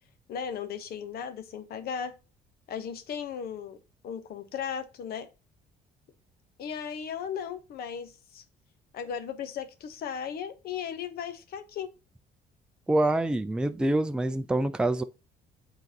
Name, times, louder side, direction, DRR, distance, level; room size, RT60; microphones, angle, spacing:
voice 1, 0.3-2.1 2.7-3.8 4.0-5.3 6.6-8.4 8.9-11.9, left 7 dB, 65° left, 1.0 m, -36 dB
voice 2, 12.9-15.0, right 1 dB, 5° right, 0.4 m, -26 dB
8.0 x 4.0 x 2.9 m
cardioid pair, 110°, 17 cm